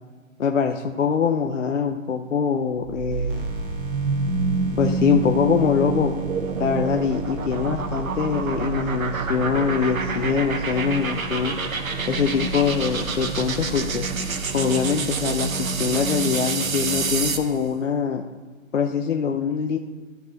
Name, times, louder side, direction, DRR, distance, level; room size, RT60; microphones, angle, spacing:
voice 1, 0.4-3.4 4.8-6.2 6.6-11.5 12.1-14.1 14.5-18.2 18.7-19.8, left 6 dB, 65° left, 4 dB, 0.8 m, -23 dB
sound 1, 2.8-17.5, right 4 dB, 90° right, 1.2 m, -27 dB
sound 2, 3.1-14.8, left 1 dB, 40° right, 1.7 m, -39 dB
14.0 x 4.6 x 4.0 m, 1.4 s
hypercardioid pair, 165°, 40 cm